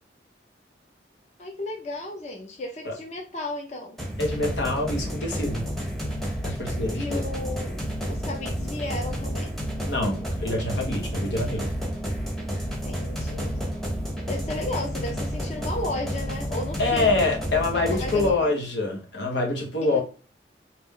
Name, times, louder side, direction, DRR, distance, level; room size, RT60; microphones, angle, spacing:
voice 1, 1.4-4.0 6.9-7.8 8.1-9.5 12.8-13.6 14.3-17.3 17.9-18.4, left 2 dB, 40° left, 0.6 m, -34 dB
sound 1, 4.0-18.3, equal, ahead, 0.7 m, -30 dB
voice 2, 4.2-5.7 6.4-7.2 9.9-11.7 16.8-20.0, left 2 dB, 80° left, 1.1 m, -26 dB
4.2 x 2.5 x 3.6 m
head